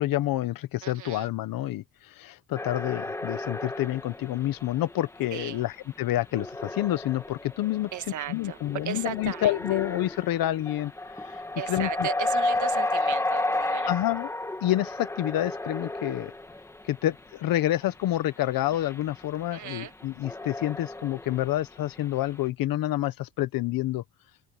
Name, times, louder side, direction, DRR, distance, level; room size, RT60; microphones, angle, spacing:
voice 1, 0.0-7.9 8.3-10.9 11.3-11.4 11.7-12.1 13.9-14.3 14.6-16.3 16.9-24.0, left 14 dB, 65° left, 1.0 m, -28 dB
voice 2, 0.8-1.3 5.3-5.6 7.9-8.6 8.8-9.5 11.6-13.9 19.5-19.9, right 11 dB, 50° right, 1.4 m, -36 dB
sound 1, 2.5-5.7 6.0-17.3 17.7-17.8 18.5-22.3, left 2 dB, 5° left, 1.6 m, -33 dB
open air
cardioid pair, 180°, 37 cm